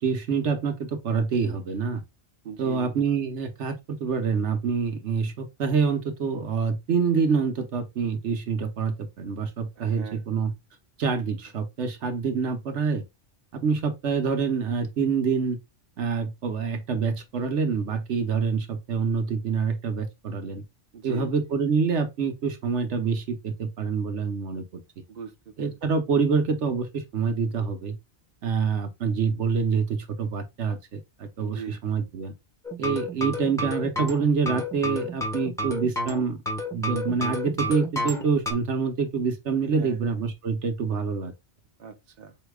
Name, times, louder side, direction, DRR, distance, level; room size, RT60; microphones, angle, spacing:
voice 1, 0.0-2.0 2.6-10.5 11.0-13.0 13.5-15.6 16.0-20.6 21.0-24.8 25.6-28.0 28.4-32.3 32.8-36.4 36.7-41.3, right 5 dB, 80° right, 1.2 m, -26 dB
voice 2, 2.4-2.9 9.8-10.2 20.9-21.6 25.1-25.8 31.4-31.8 39.6-40.2 41.8-42.4, right 7 dB, 55° right, 1.1 m, -41 dB
sound 1, 32.7-38.5, left 1 dB, 5° left, 1.2 m, -30 dB
8.0 x 2.9 x 2.3 m
omnidirectional pair, 1.2 m